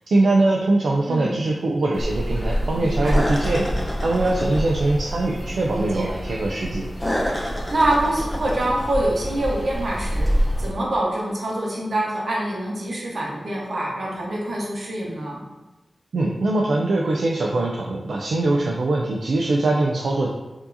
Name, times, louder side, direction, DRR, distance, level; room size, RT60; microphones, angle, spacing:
voice 1, 0.1-3.7 4.0-6.9 16.1-20.3, right 2 dB, 85° right, -2 dB, 0.3 m, -22 dB
voice 2, 1.1-1.4 2.7-3.2 5.7-6.1 7.4-10.3 10.6-15.4, right 1 dB, 70° right, -4 dB, 0.9 m, -25 dB
sound 1, 1.9-10.7, equal, 15° left, 0.6 m, -26 dB
4.5 x 2.8 x 2.5 m, 1.1 s
wide cardioid pair, 110°, 0 cm